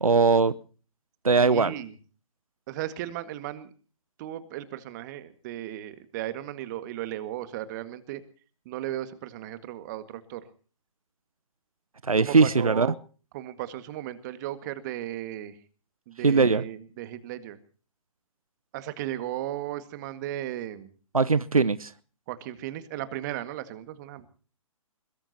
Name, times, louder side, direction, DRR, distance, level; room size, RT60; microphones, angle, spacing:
voice 1, 0.0-0.5 1.2-1.7 12.1-12.9 16.2-16.6 21.1-21.9, right 4 dB, 85° right, 0.8 m, -20 dB
voice 2, 1.4-1.9 2.7-3.7 4.2-8.2 8.7-10.4 12.2-13.0 13.3-15.6 16.1-17.6 18.7-20.9 22.3-24.3, right 13 dB, 30° right, 1.9 m, -36 dB
22.0 x 21.5 x 2.9 m
figure-of-eight pair, 135°, 18 cm